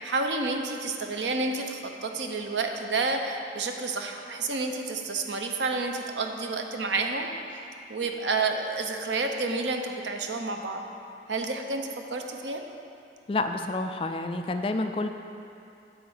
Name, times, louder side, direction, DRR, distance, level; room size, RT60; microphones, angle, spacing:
voice 1, 0.0-7.3 7.9-10.8 11.3-12.6, right 3 dB, 85° right, 4 dB, 0.7 m, -30 dB
voice 2, 13.3-15.1, left 2 dB, 30° left, 7 dB, 0.3 m, -29 dB
9.4 x 3.8 x 7.1 m, 2.6 s
head